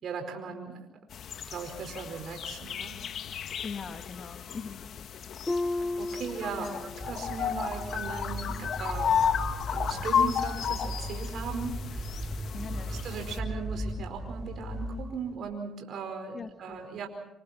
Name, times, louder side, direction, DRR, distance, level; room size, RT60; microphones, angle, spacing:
voice 1, 0.0-0.9 1.5-2.9 5.7-9.2 9.7-12.1 12.6-17.1, right 5 dB, 65° right, 4 dB, 4.8 m, -38 dB
sound 1, 1.1-13.4, left 8 dB, 60° left, 1.5 m, -33 dB
voice 2, 3.6-4.8 6.6-6.9 12.5-13.0 16.3-16.9, left 5 dB, 45° left, 6 dB, 2.1 m, -41 dB
Harp, 5.5-7.2 7.6-8.0 8.6-8.7, left 2 dB, 15° left, 0.9 m, -34 dB
sound 2, 7.0-15.4, equal, 5° right, 5.0 m, -37 dB
27.5 x 27.5 x 4.4 m, 0.86 s
cardioid pair, 85°, 0 cm